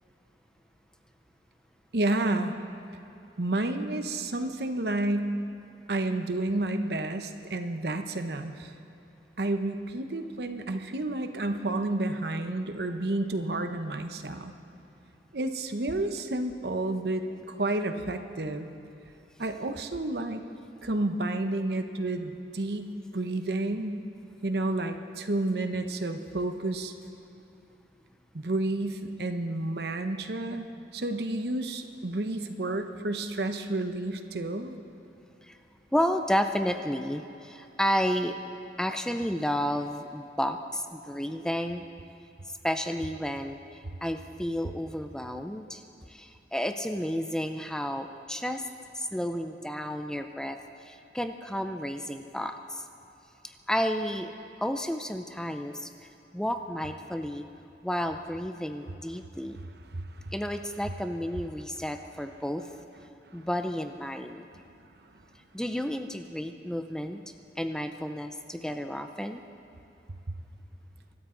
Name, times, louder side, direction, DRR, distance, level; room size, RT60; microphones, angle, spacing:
voice 1, 1.9-2.5 3.4-5.3 5.9-8.7 9.4-14.5 15.3-18.7 19.4-20.4 20.8-24.0 24.4-26.9 28.3-30.7 30.9-34.8 59.9-60.3, right 2 dB, 65° right, 7 dB, 0.9 m, -30 dB
voice 2, 35.9-38.4 38.8-41.8 42.5-45.8 46.1-48.7 48.9-52.9 53.4-54.3 54.6-55.9 56.3-57.4 57.8-59.6 60.3-62.6 63.3-64.5 65.5-67.2 67.6-69.4, equal, 5° left, 7 dB, 0.5 m, -31 dB
24.5 x 13.0 x 3.9 m, 2.9 s
head